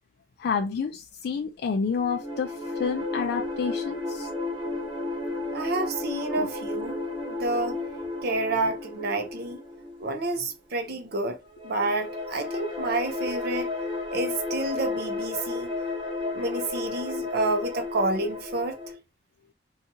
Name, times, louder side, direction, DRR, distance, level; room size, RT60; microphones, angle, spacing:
voice 1, 0.4-4.3 6.4-6.5, left 6 dB, 60° left, 0.3 m, -29 dB
sound 1, 1.9-10.5 11.5-18.9, left 3 dB, 25° right, 1.2 m, -33 dB
voice 2, 5.5-7.0 7.3-7.8 8.2-9.6 10.0-11.4 11.6-13.7 14.1-15.7 16.3-18.8, right 2 dB, 55° right, 0.6 m, -29 dB
2.7 x 2.3 x 2.7 m
head